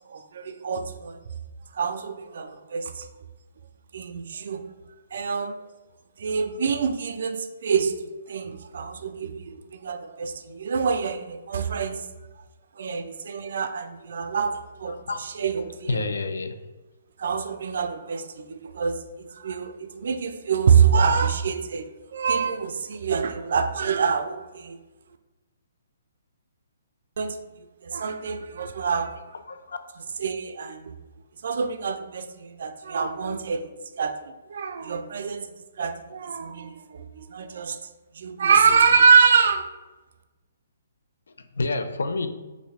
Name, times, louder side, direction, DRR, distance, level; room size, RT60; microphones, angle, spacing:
voice 1, 0.1-1.2 1.7-3.1 3.9-4.6 5.1-5.6 6.2-7.9 8.3-12.0 12.8-14.5 14.8-16.0 17.2-24.8 27.2-27.4 27.8-29.1 30.2-30.9 31.4-33.7 34.0-34.2 34.5-35.5 35.8-37.8 38.2-39.7, right 6 dB, 65° right, 8 dB, 0.3 m, -25 dB
voice 2, 14.9-15.2 15.9-16.5 28.8-29.0 29.5-29.8 41.6-42.3, left 3 dB, 85° left, 9 dB, 0.3 m, -28 dB
3.1 x 2.5 x 3.3 m, 1.2 s
hypercardioid pair, 155°, 0 cm